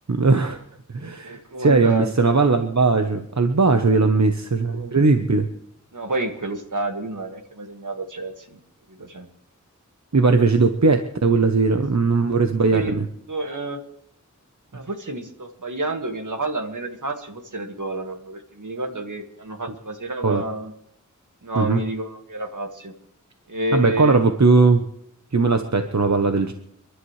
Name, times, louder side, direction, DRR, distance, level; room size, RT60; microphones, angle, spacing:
voice 1, 0.1-0.6 0.9-5.5 10.1-13.0 20.2-20.4 21.6-21.8 23.7-24.8 25.3-26.5, right 3 dB, 60° right, 6 dB, 1.0 m, -19 dB
voice 2, 1.2-2.1 3.8-4.2 4.7-5.0 5.9-8.6 8.9-9.3 12.6-12.9 13.3-13.8 14.7-20.7 21.4-22.9 23.5-24.2, right 2 dB, 75° right, 4 dB, 2.0 m, -30 dB
29.5 x 11.5 x 3.3 m, 0.70 s
wide cardioid pair, 50°, 31 cm